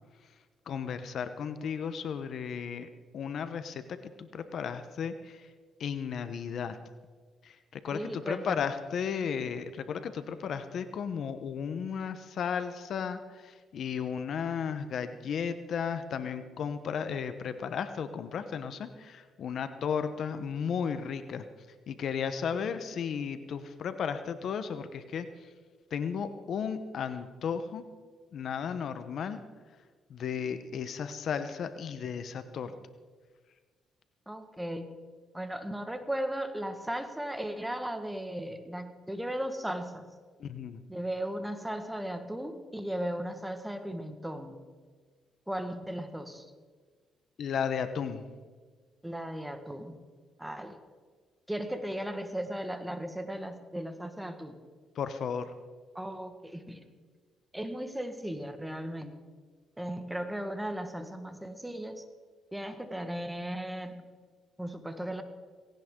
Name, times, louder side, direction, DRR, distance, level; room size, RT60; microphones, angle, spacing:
voice 1, 0.7-2.9 3.1-5.5 5.8-6.8 7.4-21.4 21.9-25.5 25.9-27.8 28.3-29.4 30.1-32.7 40.4-40.8 47.4-48.2 54.9-55.5, left 7 dB, 65° left, 10 dB, 1.0 m, -34 dB
voice 2, 7.9-8.7 22.5-22.7 34.3-34.9 35.3-40.1 40.9-44.6 45.5-46.5 49.0-50.0 50.4-50.8 51.5-54.5 55.9-56.8 57.5-59.2 59.8-62.0 62.5-64.0 64.6-65.2, right 1 dB, 5° right, 8 dB, 1.6 m, -36 dB
18.5 x 17.0 x 3.8 m, 1.5 s
cardioid pair, 90°, 0 cm